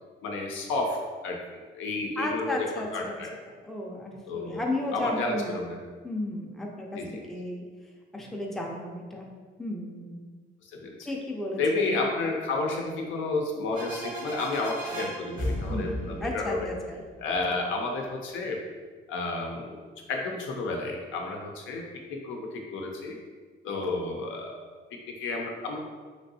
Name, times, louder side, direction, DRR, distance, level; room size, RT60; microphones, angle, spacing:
voice 1, 0.2-2.7 2.9-3.3 4.3-5.8 6.9-7.3 10.7-11.1 11.6-16.7 17.2-18.6 19.1-19.8 20.1-23.2 23.6-24.6 24.9-25.8, left 3 dB, 80° left, 1 dB, 0.5 m, -31 dB
voice 2, 2.2-3.2 3.6-5.7 6.0-7.6 8.1-9.3 9.6-10.2 11.1-12.0 15.7-17.0, left 1 dB, ahead, -1 dB, 0.5 m, -34 dB
sound 1, 13.7-17.4, equal, 70° right, 1.2 m, -35 dB
3.2 x 2.6 x 2.7 m, 1.5 s
cardioid pair, 90°, 20 cm